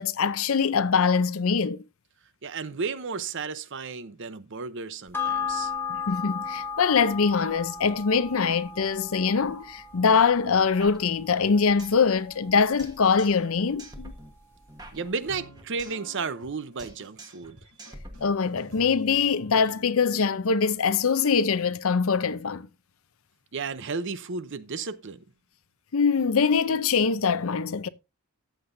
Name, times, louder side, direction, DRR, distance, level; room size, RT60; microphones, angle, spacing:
voice 1, 0.0-1.8 6.1-14.1 18.2-22.7 25.9-27.9, left 5 dB, 65° left, 0.6 m, -23 dB
voice 2, 2.4-5.7 14.9-17.6 23.5-25.2, right 4 dB, 55° right, 0.7 m, -33 dB
sound 1, 5.1-13.9 14.2-14.3, left 6 dB, 10° left, 1.3 m, -36 dB
sound 2, 10.8-12.1 12.3-12.4 12.8-13.5 13.8-16.1 16.3-16.5 16.8-17.5 17.8-18.8, right 1 dB, 20° right, 1.5 m, -46 dB
sound 3, 15.2-20.1, right 1 dB, 90° right, 6.3 m, -50 dB
14.0 x 8.0 x 2.6 m
head